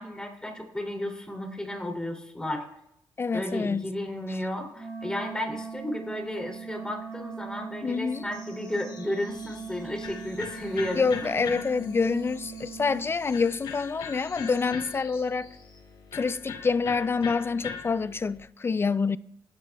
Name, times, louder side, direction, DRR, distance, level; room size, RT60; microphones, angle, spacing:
voice 1, 0.0-2.6 3.3-11.3, left 1 dB, 10° left, 2.8 m, -33 dB
voice 2, 3.2-3.9 4.3-4.4 7.8-8.3 11.0-15.5 16.1-19.2, left 5 dB, 30° left, 0.3 m, -27 dB
Wind instrument woodwind instrument, 4.7-13.2, right 6 dB, 30° right, 6.5 m, -40 dB
sound 1, 8.3-15.9, left 4 dB, 60° left, 3.2 m, -53 dB
Electric guitar, 9.3-18.4, left 6 dB, 90° left, 3.0 m, -42 dB
25.5 x 12.0 x 2.3 m
cardioid pair, 105°, 8 cm